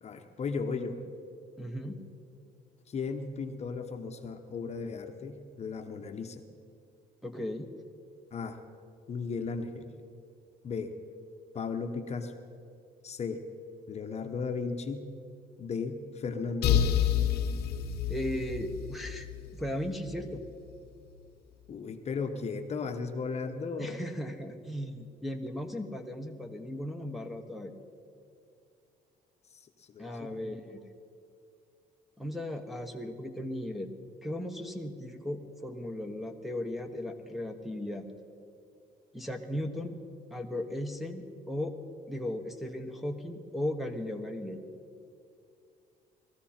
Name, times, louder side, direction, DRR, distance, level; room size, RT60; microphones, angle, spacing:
voice 1, 0.0-1.0 2.9-6.4 8.3-8.6 9.1-9.9 10.6-10.9 11.5-12.3 13.0-13.4 13.9-15.1 15.6-17.0 21.7-24.0 29.5-30.6, left 4 dB, 40° left, 6 dB, 1.0 m, -36 dB
voice 2, 1.6-2.0 7.2-7.7 18.1-19.3 19.5-20.4 23.8-27.7 30.0-30.8 32.2-33.9 34.2-38.1 39.1-40.0 40.3-41.8 42.1-44.6, left 1 dB, ahead, 1 dB, 1.1 m, -36 dB
sound 1, 16.6-20.3, left 9 dB, 75° left, 1.0 m, -29 dB
19.5 x 14.0 x 4.4 m, 2.4 s
cardioid pair, 110°, 17 cm